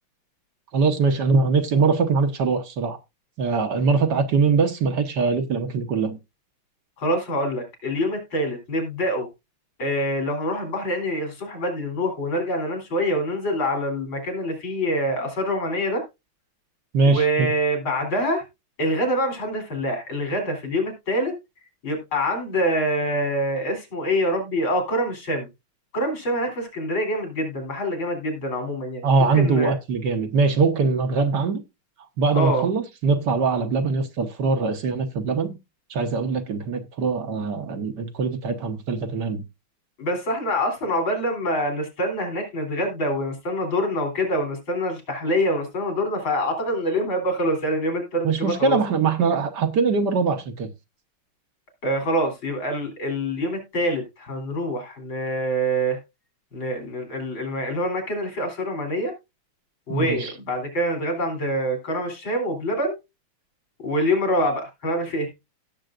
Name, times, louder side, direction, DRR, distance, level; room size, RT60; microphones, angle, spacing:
voice 1, 0.7-3.0 3.4-6.2 16.9-17.5 29.0-31.6 32.2-35.6 35.9-39.4 48.2-50.7 59.9-60.3, right 4 dB, 60° right, 1.6 m, -22 dB
voice 2, 7.0-9.3 9.8-16.0 17.1-18.4 18.8-21.3 21.8-25.5 25.9-29.7 32.3-32.6 40.0-48.8 51.8-56.0 56.5-59.1 59.9-63.0 63.8-65.3, equal, 70° left, 4.1 m, -25 dB
17.0 x 6.9 x 2.5 m
omnidirectional pair, 2.2 m